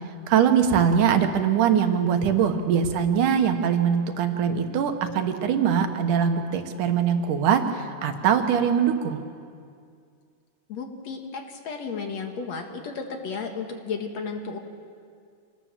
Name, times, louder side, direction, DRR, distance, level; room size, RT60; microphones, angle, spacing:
voice 1, 0.3-9.2, right 7 dB, 70° right, 7 dB, 2.7 m, -22 dB
voice 2, 10.7-14.6, left 5 dB, 60° left, 4 dB, 2.5 m, -33 dB
27.0 x 19.0 x 7.4 m, 2.2 s
omnidirectional pair, 3.9 m